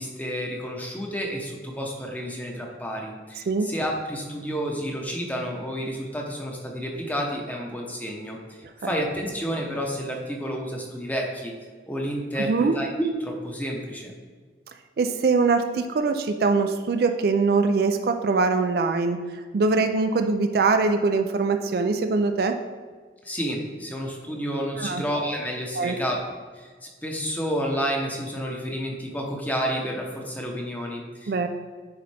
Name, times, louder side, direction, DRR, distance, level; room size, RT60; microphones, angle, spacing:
voice 1, 0.0-11.5 11.9-14.1 23.2-26.2 26.5-31.5, equal, 10° left, 0 dB, 0.9 m, -30 dB
voice 2, 12.4-12.8 15.0-19.2 19.5-22.6 24.8-25.0 25.8-25.9 31.3-31.5, right 4 dB, 55° right, 7 dB, 0.4 m, -22 dB
9.5 x 4.0 x 3.4 m, 1.5 s
head